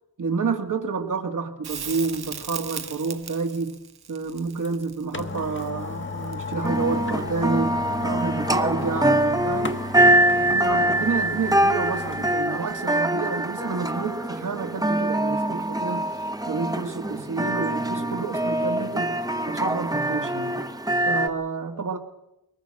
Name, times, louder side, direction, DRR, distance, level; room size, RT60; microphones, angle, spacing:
voice 1, 0.2-3.8 4.1-16.1 16.5-19.2 19.5-20.6 21.0-22.0, right 4 dB, 55° right, 6 dB, 1.8 m, -29 dB
Crackle, 1.6-6.8 9.5-9.6, right 7 dB, 85° right, 1.4 m, -38 dB
sound 1, 4.6-4.7 5.1-12.4 12.8-12.9, left 5 dB, 30° left, 1.4 m, -34 dB
sound 2, 6.6-21.3, right 1 dB, 10° right, 1.0 m, -24 dB
22.5 x 19.0 x 7.5 m, 0.93 s
wide cardioid pair, 125°, 37 cm